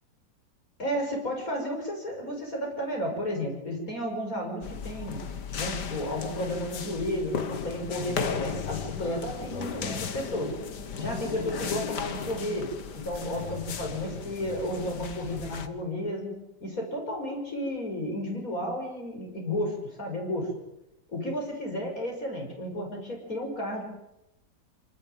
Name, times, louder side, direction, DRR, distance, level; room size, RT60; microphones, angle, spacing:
voice 1, 0.8-5.2 5.6-10.5 11.0-12.7 13.0-20.5 21.1-23.8, left 1 dB, 50° left, 0 dB, 6.7 m, -32 dB
sound 1, 4.6-15.7, left 6 dB, 75° left, 2.2 m, -36 dB
27.5 x 19.0 x 9.3 m, 0.87 s
omnidirectional pair, 1.8 m